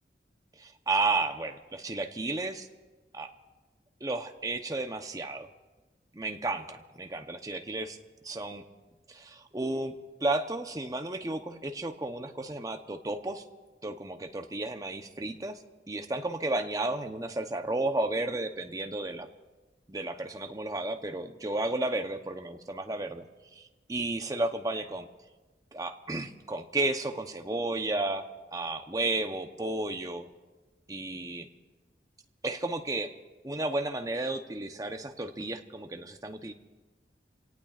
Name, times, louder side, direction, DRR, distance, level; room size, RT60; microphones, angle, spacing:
voice 1, 0.6-2.7 3.1-3.3 4.0-5.5 6.1-8.0 8.2-8.6 9.1-9.9 10.2-13.4 13.8-19.3 19.9-23.2 23.5-25.1 25.7-28.2 28.5-30.3 30.9-31.5 32.4-33.1 33.4-36.5, right 2 dB, 20° right, 6 dB, 0.8 m, -33 dB
28.0 x 17.5 x 2.5 m, 1.2 s
head